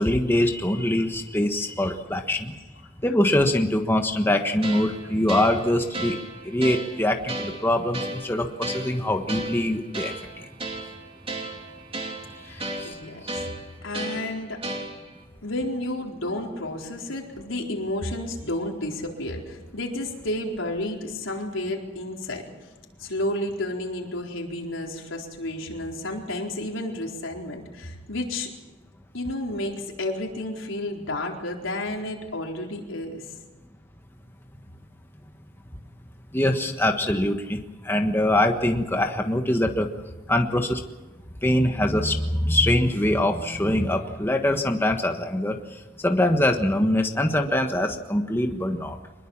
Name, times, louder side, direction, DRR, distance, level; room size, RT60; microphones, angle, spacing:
voice 1, 0.0-2.5 3.0-6.2 6.4-10.1 12.8-12.9 13.2-13.3 36.3-37.6 37.8-39.9 40.3-40.8 41.4-45.6 46.0-49.0, left 1 dB, 10° left, 4 dB, 1.4 m, -23 dB
sound 1, 4.6-15.2, right 2 dB, 30° right, 3.0 m, -35 dB
voice 2, 12.4-13.5 13.8-14.6 15.4-22.4 23.0-28.5 29.1-33.3, left 1 dB, 85° left, 0 dB, 4.3 m, -31 dB
25.0 x 21.0 x 7.4 m, 1.2 s
head